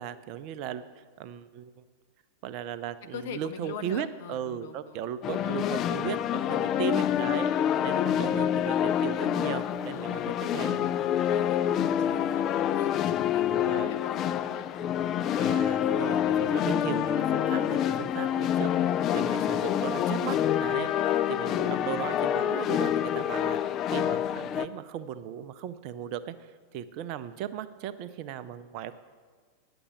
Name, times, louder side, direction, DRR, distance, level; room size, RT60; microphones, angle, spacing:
voice 1, 0.0-1.8 2.4-7.5 7.8-10.8 13.5-13.9 15.4-23.6 23.9-28.9, right 9 dB, 45° right, 13 dB, 0.5 m, -37 dB
voice 2, 3.1-5.0 9.9-10.3 10.8-14.7, left 5 dB, 55° left, 9 dB, 0.7 m, -43 dB
sound 1, 5.2-24.7, left 10 dB, 35° left, 0.3 m, -27 dB
9.8 x 6.9 x 6.5 m, 1.5 s
figure-of-eight pair, 90°, 0 cm